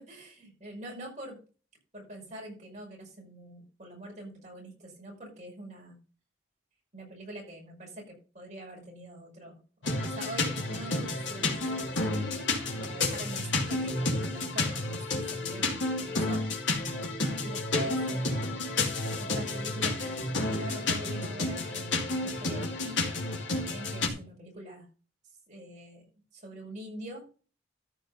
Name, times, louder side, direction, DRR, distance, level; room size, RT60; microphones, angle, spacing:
voice 1, 0.0-1.4 1.9-6.0 6.9-12.3 12.8-16.5 17.4-18.6 19.2-23.1 23.5-24.9 25.5-26.0 26.3-27.2, right 1 dB, 40° right, -2 dB, 5.7 m, -44 dB
sound 1, 9.8-24.1, left 2 dB, 80° left, 2.6 m, -31 dB
14.0 x 5.0 x 5.3 m, 0.36 s
head